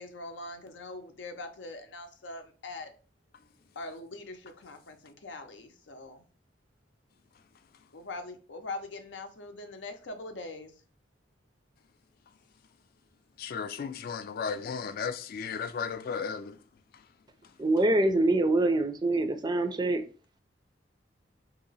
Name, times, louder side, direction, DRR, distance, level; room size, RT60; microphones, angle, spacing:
voice 1, 0.0-2.9 3.8-6.2 7.9-10.7, left 2 dB, 90° left, 0.6 m, -42 dB
voice 2, 13.4-16.6, left 6 dB, 55° left, 0.3 m, -34 dB
voice 3, 17.6-20.0, right 2 dB, 25° right, 0.4 m, -25 dB
2.9 x 2.8 x 4.0 m
head